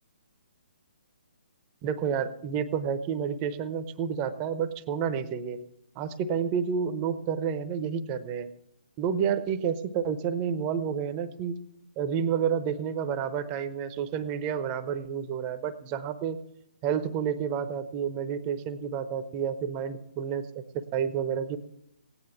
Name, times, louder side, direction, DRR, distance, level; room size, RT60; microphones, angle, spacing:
voice 1, 1.8-5.6 6.0-8.5 9.0-11.6 12.0-16.4 16.8-21.6, right 7 dB, 25° right, 11 dB, 0.8 m, -30 dB
16.5 x 9.8 x 6.0 m, 0.77 s
figure-of-eight pair, 135°, 5 cm